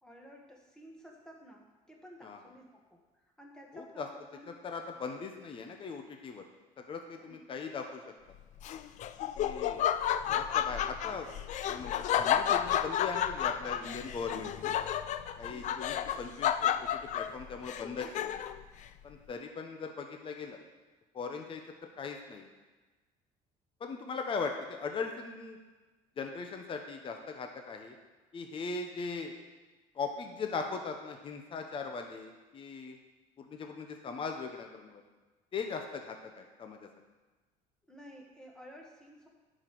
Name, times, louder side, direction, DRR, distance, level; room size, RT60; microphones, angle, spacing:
voice 1, 0.0-4.5 7.2-7.4 15.5-15.8 37.9-39.3, equal, 5° left, -1 dB, 1.8 m, -53 dB
voice 2, 3.7-4.1 4.5-6.5 6.8-8.0 9.4-9.9 10.2-11.3 11.6-14.7 15.4-18.4 19.0-20.6 21.1-21.6 22.0-22.5 23.8-25.6 26.2-27.9 28.3-29.3 29.9-33.0 33.4-35.0 35.5-36.9, left 4 dB, 35° left, 4 dB, 1.0 m, -39 dB
Laughter, 8.6-18.6, left 10 dB, 55° left, 0.5 m, -31 dB
10.0 x 5.2 x 6.0 m, 1.3 s
cardioid pair, 125°, 15 cm